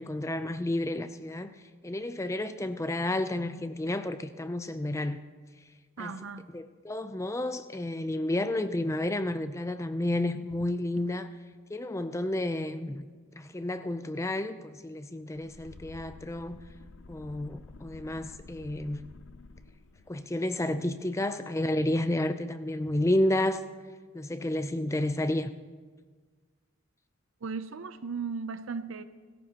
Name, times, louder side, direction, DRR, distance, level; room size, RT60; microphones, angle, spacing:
voice 1, 0.0-1.5 1.8-5.2 6.0-6.2 6.5-11.3 11.7-13.1 13.4-16.6 17.1-19.0 20.1-23.6 24.1-25.5, left 1 dB, 15° left, 11 dB, 0.4 m, -31 dB
voice 2, 6.0-6.5 15.4-15.5 27.4-29.0, right 5 dB, 60° right, 11 dB, 0.6 m, -36 dB
sound 1, 15.3-20.2, left 3 dB, 55° left, 0.6 m, -50 dB
26.0 x 14.5 x 2.9 m, 1.5 s
head